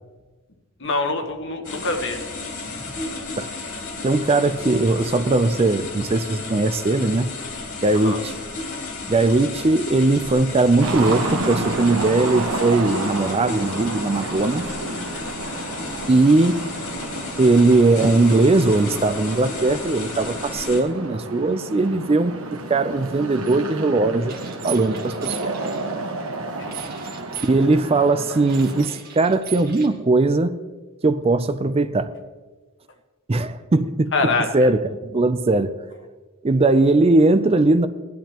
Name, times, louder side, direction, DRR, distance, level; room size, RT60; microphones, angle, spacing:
voice 1, 0.8-2.2 7.9-8.2 26.6-26.8 34.1-34.7, left 3 dB, 60° left, 5 dB, 1.4 m, -25 dB
sound 1, 1.6-20.8, left 3 dB, 80° left, 3.3 m, -33 dB
voice 2, 4.0-7.3 7.8-8.3 9.1-14.6 16.1-16.6 17.4-24.4 24.6-25.5 27.4-30.6 31.0-32.1 33.3-34.1 34.5-35.7 36.4-37.9, right 2 dB, 30° right, 11 dB, 0.4 m, -19 dB
sound 2, 10.8-28.9, right 2 dB, 75° right, 1.3 m, -31 dB
sound 3, 23.4-23.6 24.3-25.8 26.7-27.6 28.4-29.9, right 9 dB, 45° right, 1.7 m, -37 dB
18.0 x 11.5 x 3.0 m, 1.3 s
head